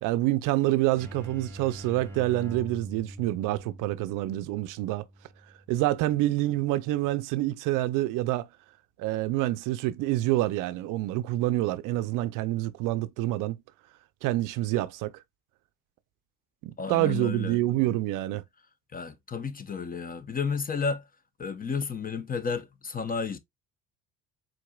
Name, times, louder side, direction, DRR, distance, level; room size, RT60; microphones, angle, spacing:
voice 1, 0.0-5.0 5.7-8.5 9.0-13.6 14.2-15.1 16.6-18.4, right 16 dB, 60° right, 0.5 m, -27 dB
sound 1, 1.0-6.5, right 1 dB, 5° left, 2.7 m, -44 dB
voice 2, 16.8-17.6 18.9-21.0 21.4-23.4, left 5 dB, 25° left, 0.7 m, -32 dB
4.6 x 4.0 x 2.3 m
supercardioid pair, 80°, 35 cm